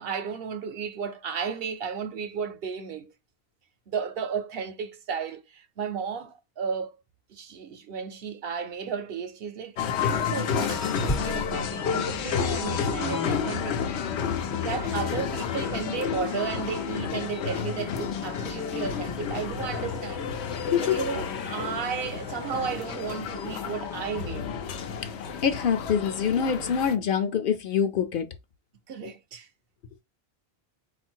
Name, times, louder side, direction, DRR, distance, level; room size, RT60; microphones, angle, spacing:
voice 1, 0.0-3.1 3.9-7.0 7.3-9.7 10.0-13.8 14.6-20.2 20.8-24.5 28.9-29.5, right 6 dB, 70° right, 0.9 m, -34 dB
sound 1, 9.8-27.0, left 7 dB, 90° left, 0.9 m, -30 dB
sound 2, 9.8-10.3 10.8-13.2 16.0-16.3 17.3-17.5 17.9-18.0 22.8-22.9, left 1 dB, 25° left, 0.4 m, -36 dB
voice 2, 25.4-28.3, left 7 dB, 60° left, 0.7 m, -25 dB
4.0 x 2.5 x 4.4 m
omnidirectional pair, 1.1 m